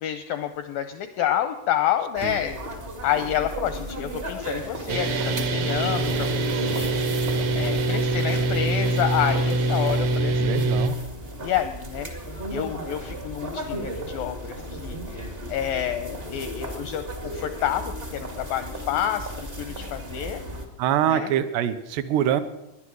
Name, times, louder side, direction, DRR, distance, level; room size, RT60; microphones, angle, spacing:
voice 1, 0.0-2.6 3.0-6.9 7.5-10.7 11.4-12.1 12.5-15.2 15.5-17.0 17.3-20.4 21.1-21.3, left 10 dB, 80° left, 10 dB, 2.0 m, -28 dB
sound 1, 2.1-20.7, equal, 45° right, 0.7 m, -35 dB
sound 2, 4.9-10.9, right 2 dB, 65° right, 2.0 m, -24 dB
voice 2, 10.4-10.9 20.8-22.4, right 10 dB, 80° right, 10 dB, 2.9 m, -24 dB
19.0 x 11.5 x 6.3 m, 0.94 s
omnidirectional pair, 4.8 m